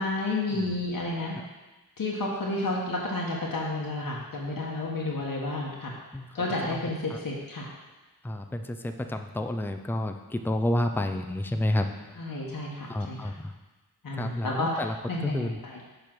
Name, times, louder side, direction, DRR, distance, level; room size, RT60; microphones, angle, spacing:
voice 1, 0.0-1.4 2.0-5.9 6.3-7.7 12.2-13.3 14.0-15.8, left 2 dB, 55° left, -3 dB, 1.2 m, -31 dB
voice 2, 8.2-11.9 12.9-13.3 14.2-14.9 15.2-15.6, left 1 dB, 5° left, 6 dB, 0.5 m, -29 dB
6.8 x 3.4 x 5.9 m, 1.2 s
cardioid pair, 50°, 39 cm